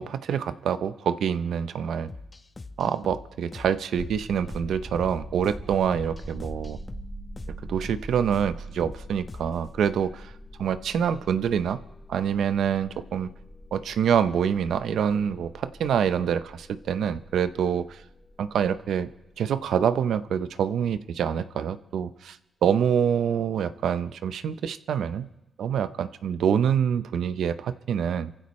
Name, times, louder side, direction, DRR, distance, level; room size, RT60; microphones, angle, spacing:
voice 1, 0.0-2.1 2.8-6.8 7.7-10.3 10.6-11.8 12.1-13.3 13.7-18.0 18.4-19.1 19.4-22.4 22.6-25.3 25.6-28.3, right 8 dB, 80° right, 12 dB, 0.8 m, -26 dB
sound 1, 2.1-9.7, left 3 dB, 30° left, 1.1 m, -44 dB
sound 2, 4.0-20.9, right 1 dB, 10° left, 3.6 m, -43 dB
26.5 x 15.5 x 3.2 m, 0.94 s
cardioid pair, 75°, 0 cm